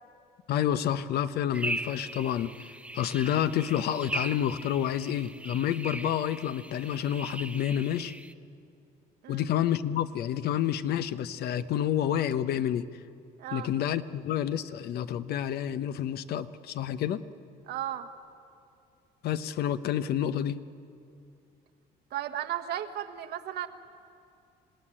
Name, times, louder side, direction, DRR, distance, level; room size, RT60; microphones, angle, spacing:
voice 1, 0.5-2.5 2.9-8.1 9.3-12.9 13.5-17.2 19.2-20.6, left 10 dB, 70° left, 12 dB, 0.8 m, -29 dB
sound 1, 1.5-8.3, right 2 dB, 5° right, 0.6 m, -39 dB
voice 2, 13.4-13.7 17.7-18.1 22.1-23.7, right 11 dB, 75° right, 7 dB, 1.4 m, -35 dB
26.5 x 17.0 x 10.0 m, 2.5 s
cardioid pair, 110°, 17 cm